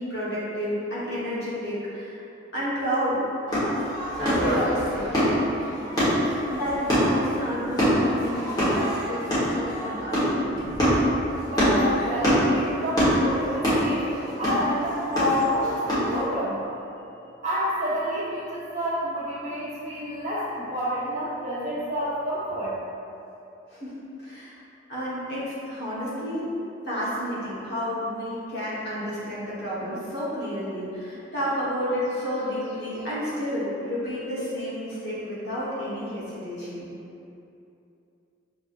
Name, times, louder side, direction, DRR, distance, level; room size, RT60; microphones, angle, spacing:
voice 1, 0.0-2.2 2.5-3.2 4.2-5.4 6.5-10.4 23.7-24.6 24.9-26.5 26.8-36.9, equal, 55° left, -9 dB, 1.3 m, -31 dB
sound 1, 3.5-16.2, equal, 20° left, 1.3 m, -24 dB
voice 2, 11.4-16.6 17.4-22.7, equal, 35° right, -10 dB, 1.1 m, -28 dB
5.9 x 3.3 x 2.6 m, 2.8 s
head